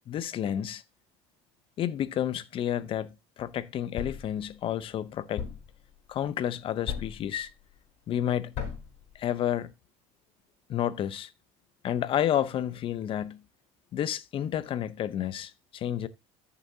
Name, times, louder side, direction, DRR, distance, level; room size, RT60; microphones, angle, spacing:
voice 1, 0.1-0.8 1.8-5.5 6.1-7.5 8.1-8.5 9.1-9.7 10.7-11.3 11.8-13.4 13.9-16.1, left 10 dB, 45° left, 0.8 m, -30 dB
Thump thud, 4.0-4.3 5.4-5.7 6.9-7.3 8.5-9.0, left 7 dB, 60° left, 3.7 m, -35 dB
13.5 x 7.0 x 2.8 m
supercardioid pair, 115°, 13 cm